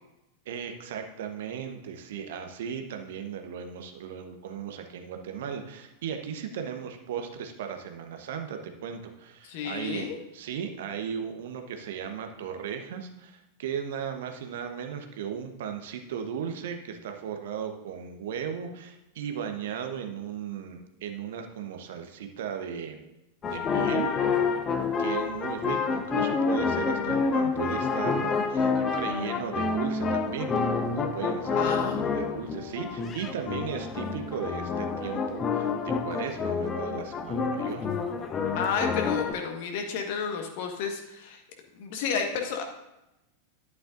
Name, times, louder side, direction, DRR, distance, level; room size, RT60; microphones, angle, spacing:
voice 1, 0.4-10.1 10.3-23.0 23.4-24.1 25.0-28.7 28.9-30.6 30.9-37.9, right 7 dB, 55° right, 5 dB, 1.1 m, -36 dB
voice 2, 9.4-10.2 31.5-32.2 38.5-41.4 41.7-42.6, left 6 dB, 50° left, 3 dB, 1.5 m, -31 dB
sound 1, 23.4-39.3, left 5 dB, 25° left, 0.9 m, -28 dB
11.5 x 9.5 x 2.6 m, 0.92 s
figure-of-eight pair, 90°, 0 cm